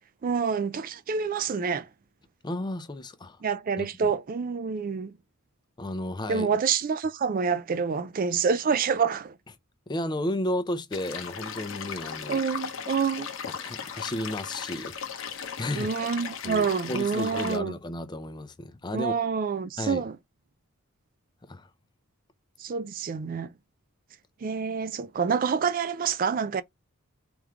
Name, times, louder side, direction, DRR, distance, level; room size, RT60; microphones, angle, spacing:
voice 1, 0.2-1.9 3.4-5.1 6.3-9.3 12.3-13.3 15.8-17.7 18.9-20.2 22.6-23.5 24.4-26.6, right 6 dB, 40° right, 0.3 m, -27 dB
voice 2, 2.4-3.4 3.8-4.1 5.8-6.5 9.9-12.4 13.5-15.9 16.4-19.1 19.8-20.1 21.4-21.7, left 1 dB, 20° left, 0.5 m, -33 dB
sound 1, 10.9-17.6, left 7 dB, 60° left, 0.7 m, -37 dB
3.5 x 3.1 x 3.6 m
head